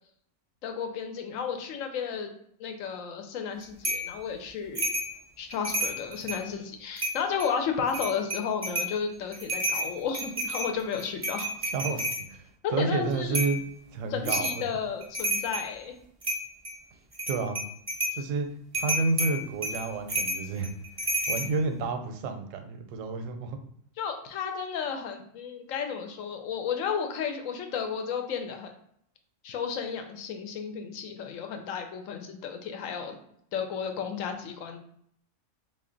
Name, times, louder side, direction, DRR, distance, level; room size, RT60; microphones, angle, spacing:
voice 1, 0.6-2.3 2.6-5.0 5.4-11.5 12.6-13.4 14.1-15.9 24.0-28.7 29.4-33.2 33.5-34.8, left 6 dB, 90° left, 5 dB, 1.0 m, -33 dB
sound 1, 3.8-4.1 4.8-5.1 5.5-6.5 7.0-7.5 7.9-9.0 9.3-12.2 13.3-13.6 14.3-14.6 15.0-15.7 16.2-16.8 17.1-18.2 18.7-21.5, right 1 dB, 30° right, 0.4 m, -30 dB
voice 2, 11.7-13.6 13.9-14.7 17.3-17.6 18.1-18.5 18.7-20.7 21.3-23.6, right 4 dB, 80° right, 6 dB, 0.9 m, -30 dB
3.3 x 2.4 x 3.8 m, 0.69 s
omnidirectional pair, 1.3 m